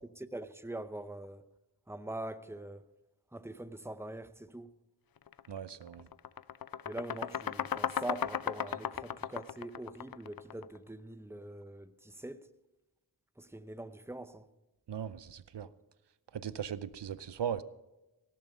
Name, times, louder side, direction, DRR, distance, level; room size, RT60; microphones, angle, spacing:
voice 1, 0.2-1.4 1.9-2.9 3.3-4.7 6.9-12.5 13.4-14.5, right 1 dB, 5° right, 0.7 m, -43 dB
sound 1, 5.3-5.5 5.8-10.8, left 9 dB, 55° left, 0.5 m, -36 dB
voice 2, 5.5-6.1 14.9-15.7 16.3-17.6, right 8 dB, 75° right, 0.7 m, -38 dB
17.5 x 7.5 x 5.5 m
wide cardioid pair, 45°, 42 cm